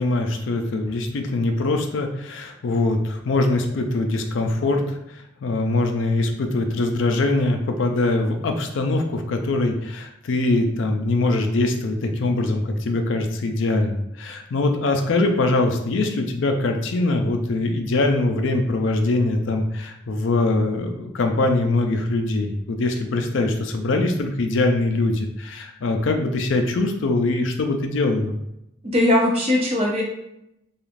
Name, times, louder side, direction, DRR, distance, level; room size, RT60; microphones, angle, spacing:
voice 1, 0.0-4.8 5.4-28.3, left 2 dB, 70° left, 5 dB, 0.4 m, -22 dB
voice 2, 28.9-30.0, left 1 dB, 30° right, -2 dB, 0.6 m, -19 dB
3.1 x 2.4 x 2.5 m, 0.82 s
head